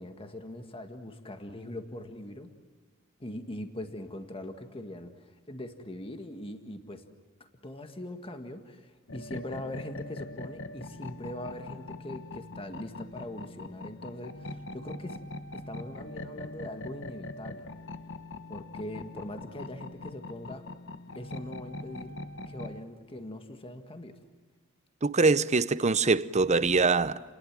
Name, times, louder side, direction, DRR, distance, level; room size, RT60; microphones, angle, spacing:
voice 1, 0.0-2.5 3.2-7.0 7.6-15.2 15.5-17.7 18.5-20.6 21.1-22.2 22.5-24.1, left 1 dB, 25° left, 1.8 m, -41 dB
sound 1, 9.1-22.8, left 2 dB, 60° left, 1.1 m, -42 dB
voice 2, 25.0-27.2, right 4 dB, 35° right, 0.8 m, -24 dB
30.0 x 20.5 x 7.5 m
head